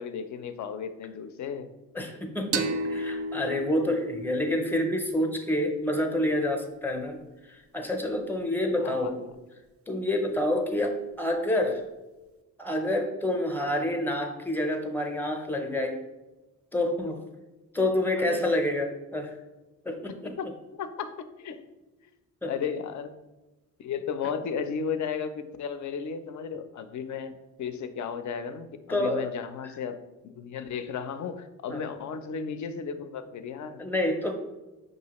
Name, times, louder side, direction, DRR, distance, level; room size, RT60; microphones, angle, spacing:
voice 1, 0.0-1.7 8.8-9.2 18.2-18.4 20.1-21.6 22.5-23.1 23.8-27.3 27.6-30.0 30.4-33.8, left 6 dB, 50° left, 10 dB, 0.5 m, -34 dB
voice 2, 1.9-7.2 7.5-9.2 9.9-11.8 12.6-16.0 16.7-17.2 17.7-19.4 19.8-20.3 22.4-22.5 28.9-29.3 31.7-31.8 33.8-34.3, left 1 dB, 5° left, 4 dB, 0.6 m, -28 dB
sound 1, 2.5-5.9, right 2 dB, 40° right, 0.4 m, -34 dB
5.5 x 2.6 x 2.9 m, 1.1 s
cardioid pair, 80°, 37 cm